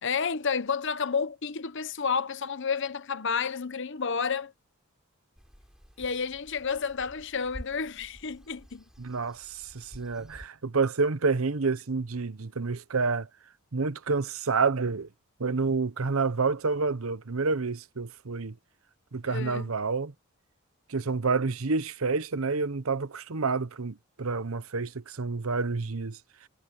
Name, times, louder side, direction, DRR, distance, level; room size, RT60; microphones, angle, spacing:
voice 1, 0.0-4.5 6.0-8.8 19.2-19.7, left 5 dB, 55° left, 0.9 m, -30 dB
sound 1, 5.3-10.5, equal, 5° right, 7.6 m, -50 dB
voice 2, 9.0-13.3 13.7-15.1 15.4-18.6 19.1-20.1 20.9-26.2, right 4 dB, 75° right, 0.9 m, -29 dB
head